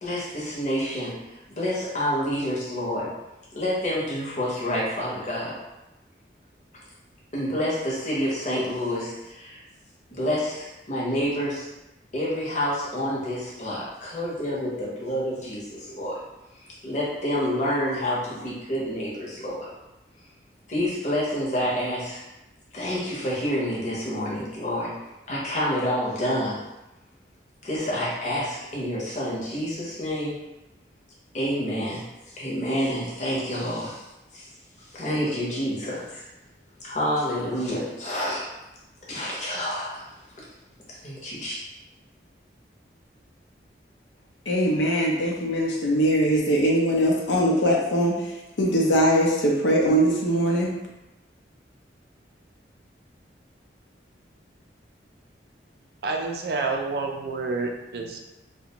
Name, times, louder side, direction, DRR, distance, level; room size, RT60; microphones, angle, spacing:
voice 1, 0.0-3.1 3.5-5.6 7.3-9.6 10.1-11.7 12.1-16.2 16.8-19.7 20.7-22.2 22.7-24.9 25.3-26.6 27.6-30.4 31.3-34.0 34.3-34.5 34.9-36.2 36.8-38.5 39.1-40.0 41.0-41.6, equal, 40° left, -6 dB, 0.7 m, -28 dB
voice 2, 44.5-48.2 48.6-50.7, equal, 85° left, -2 dB, 0.6 m, -21 dB
voice 3, 56.0-58.2, right 3 dB, 60° right, 2 dB, 0.3 m, -28 dB
2.4 x 2.1 x 2.8 m, 0.98 s
head